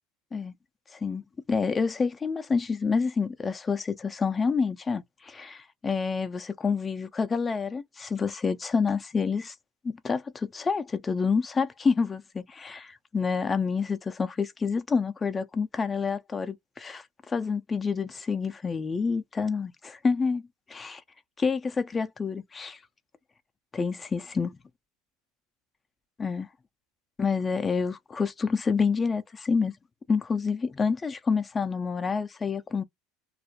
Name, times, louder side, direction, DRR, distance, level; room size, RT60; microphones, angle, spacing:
voice 1, 0.9-1.2 1.5-9.6 9.8-20.4 20.7-21.0 21.4-22.8 23.7-24.6 26.2-26.5 27.2-29.7 30.1-32.8, left 5 dB, 20° left, 0.3 m, -28 dB
2.3 x 2.1 x 2.6 m
supercardioid pair, 115°, 0 cm